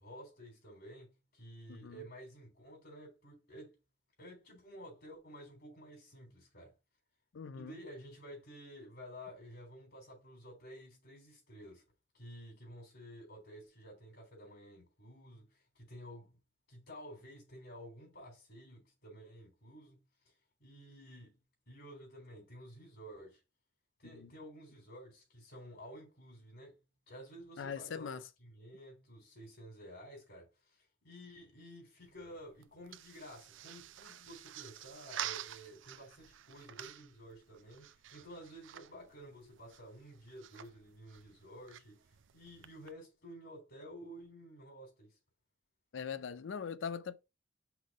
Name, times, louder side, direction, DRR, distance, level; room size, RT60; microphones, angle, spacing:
voice 1, 0.0-3.8 4.2-6.7 7.5-11.8 12.1-16.4 16.7-20.0 20.2-20.3 20.6-21.4 21.7-23.4 24.0-26.8 27.1-42.0 42.3-45.2, equal, 60° left, 3.9 m, -52 dB
voice 2, 1.7-2.0 7.3-7.7 24.1-24.3 27.6-28.2 45.9-47.2, left 6 dB, 80° left, 0.5 m, -41 dB
sound 1, 32.0-42.9, right 11 dB, 85° right, 0.5 m, -49 dB
5.8 x 3.6 x 4.8 m
head